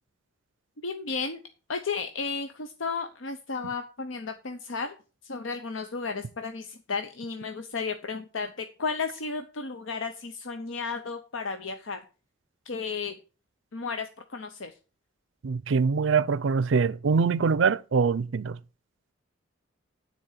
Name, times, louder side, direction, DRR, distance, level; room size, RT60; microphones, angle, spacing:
voice 1, 0.8-1.4 1.7-4.9 5.2-12.0 12.7-13.1 13.7-14.7, left 4 dB, 80° left, 0.8 m, -33 dB
voice 2, 15.4-18.6, right 5 dB, 70° right, 0.5 m, -24 dB
9.5 x 4.4 x 7.3 m
head